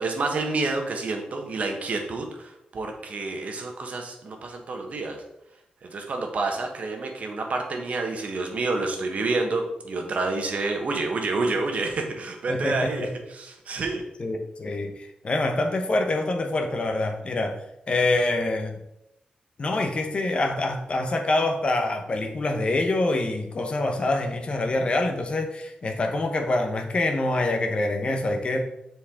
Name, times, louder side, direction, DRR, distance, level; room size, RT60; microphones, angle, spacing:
voice 1, 0.0-5.2 5.8-14.0, right 3 dB, 55° right, 3 dB, 1.2 m, -29 dB
voice 2, 12.5-13.1 14.2-17.6 17.9-18.8 19.6-28.6, left 2 dB, 40° left, 5 dB, 0.8 m, -25 dB
7.2 x 4.6 x 3.6 m, 0.82 s
wide cardioid pair, 120°, 3 cm